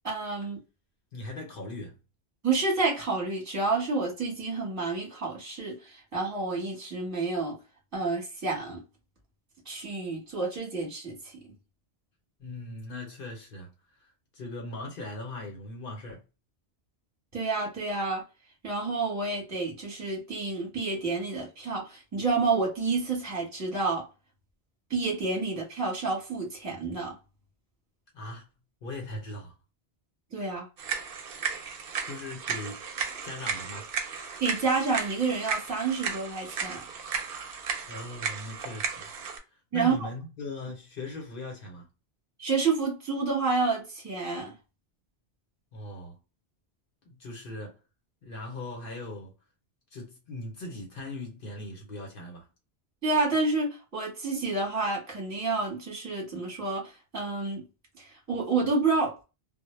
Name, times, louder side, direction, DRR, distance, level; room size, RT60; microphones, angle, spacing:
voice 1, 0.0-0.6 2.4-7.5 7.9-8.8 9.7-11.1 17.3-18.2 18.6-24.0 24.9-27.1 30.3-30.7 34.4-36.8 39.7-40.0 42.4-44.5 53.0-57.6 58.0-59.2, right 3 dB, 15° right, 0.9 m, -29 dB
voice 2, 1.1-2.0 12.4-13.7 14.0-16.2 28.1-28.5 28.8-29.6 32.0-32.8 33.2-33.9 37.9-39.1 39.5-41.9 45.7-46.2 47.0-47.8 48.2-49.3 49.9-52.5, left 2 dB, 60° left, 0.9 m, -39 dB
sound 1, 30.8-39.4, right 6 dB, 65° right, 0.7 m, -35 dB
2.1 x 2.0 x 3.0 m
omnidirectional pair, 1.1 m